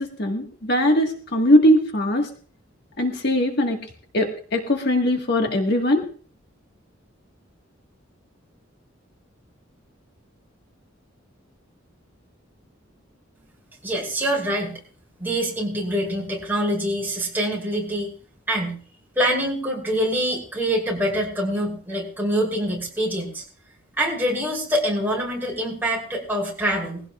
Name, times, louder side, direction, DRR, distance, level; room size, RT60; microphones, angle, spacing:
voice 1, 0.0-2.3 3.0-3.8 4.1-6.0, left 1 dB, 55° left, 3 dB, 1.6 m, -20 dB
voice 2, 13.8-14.7 15.2-18.1 18.5-18.8 19.2-23.4 24.0-27.0, equal, 10° right, -2 dB, 5.1 m, -25 dB
22.0 x 16.0 x 2.4 m, 0.41 s
head